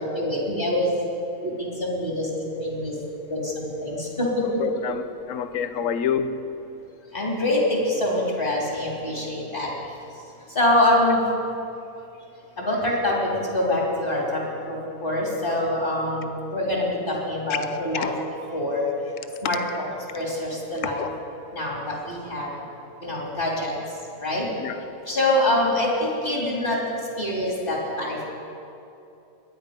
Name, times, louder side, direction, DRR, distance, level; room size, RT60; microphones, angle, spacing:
voice 1, 0.1-1.0 1.4-3.0 3.3-4.6 5.8-5.9 7.1-9.7 10.6-11.2 12.6-18.1 18.5-18.9 19.4-19.6 20.1-21.0 21.5-22.5 23.0-23.7 24.2-24.5 25.1-26.8 27.2-28.2, left 1 dB, 40° left, -3 dB, 3.4 m, -25 dB
voice 2, 4.4-6.4 17.5-17.6 18.0-18.1 21.0-21.1 24.6-24.8, left 8 dB, 70° left, 11 dB, 1.1 m, -28 dB
22.5 x 10.0 x 5.2 m, 2.7 s
omnidirectional pair, 1.5 m